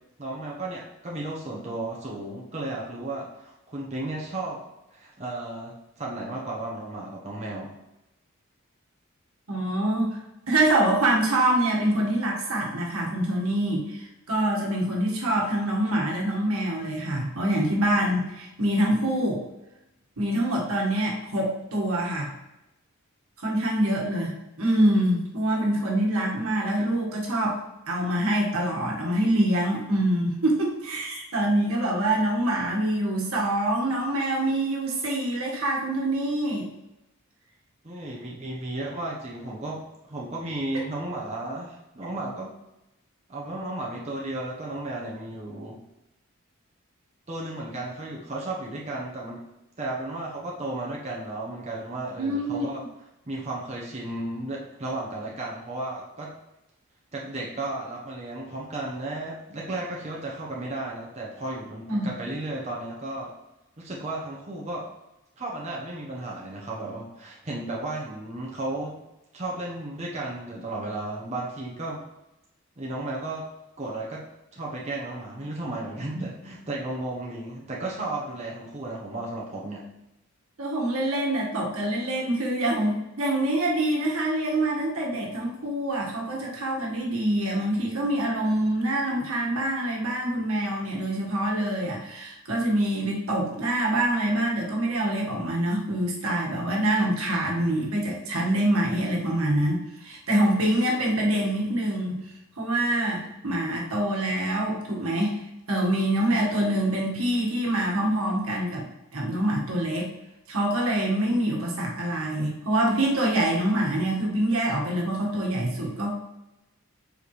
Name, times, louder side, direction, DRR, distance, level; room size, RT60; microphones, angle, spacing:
voice 1, 0.2-7.7 37.8-42.5 43.3-45.8 47.3-49.4 49.8-52.8 53.3-56.3 57.1-63.3 63.8-64.9 65.4-69.0 69.3-72.0 72.8-73.4 73.8-74.2 74.5-79.8, right 2 dB, 30° right, -4 dB, 1.0 m, -34 dB
voice 2, 9.5-10.2 10.5-19.4 20.2-22.3 23.4-27.6 27.9-36.7 52.2-52.8 61.9-62.1 76.1-76.2 80.6-102.2 102.6-105.4 105.7-108.8 109.1-110.1 110.5-116.1, right 1 dB, 80° right, -2 dB, 1.6 m, -25 dB
7.6 x 5.1 x 3.2 m, 0.93 s
head